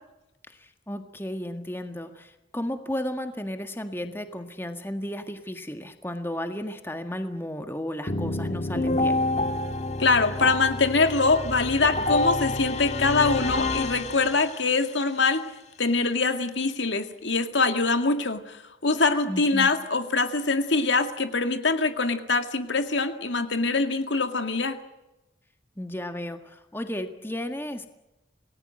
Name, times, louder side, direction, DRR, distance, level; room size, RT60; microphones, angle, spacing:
voice 1, 0.5-9.2 19.3-19.7 25.8-27.9, left 1 dB, 10° left, 7 dB, 1.7 m, -34 dB
sound 1, 8.1-14.8, left 2 dB, 35° left, 1.8 m, -28 dB
voice 2, 10.0-15.4 15.8-24.8, left 3 dB, 75° left, 8 dB, 2.1 m, -24 dB
27.5 x 19.0 x 7.8 m, 0.97 s
head